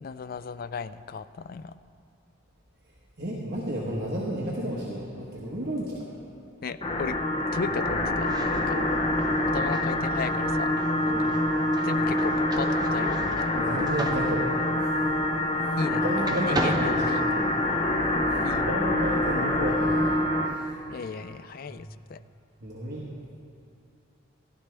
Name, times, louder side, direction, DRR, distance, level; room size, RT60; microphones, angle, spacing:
voice 1, 0.0-1.7 6.6-7.2 7.5-8.8 9.5-10.8 11.0-11.1 11.8-13.5 15.8-16.0 16.4-17.2 18.4-18.6 20.9-22.2, left 5 dB, 45° left, 13 dB, 0.3 m, -35 dB
voice 2, 3.2-6.1 8.7-8.9 11.1-11.3 13.5-14.9 15.6-17.0 18.3-20.7 21.7-21.8 22.6-23.0, equal, 50° right, -5 dB, 1.3 m, -32 dB
sound 1, 6.8-20.5, left 1 dB, 25° left, 0.7 m, -26 dB
sound 2, 8.1-15.9 16.2-17.9, right 2 dB, 20° right, 0.7 m, -37 dB
16.0 x 11.5 x 3.4 m, 2.6 s
head